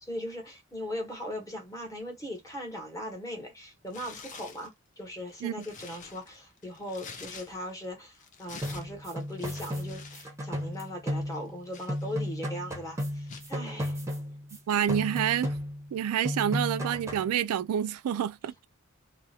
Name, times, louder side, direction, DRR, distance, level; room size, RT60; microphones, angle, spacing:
voice 1, 0.0-14.0, left 1 dB, 15° left, 0.9 m, -39 dB
Tearing, 3.9-4.7 5.2-7.8 8.1-10.3 10.6-10.8 11.3-12.5 13.3-13.5, left 5 dB, 35° left, 0.5 m, -48 dB
sound 1, 8.6-11.6 11.9-14.6 14.9-16.0 16.2-17.3, equal, 15° right, 0.7 m, -34 dB
voice 2, 14.7-15.5 15.9-18.7, right 9 dB, 90° right, 0.3 m, -28 dB
2.4 x 2.1 x 2.6 m
head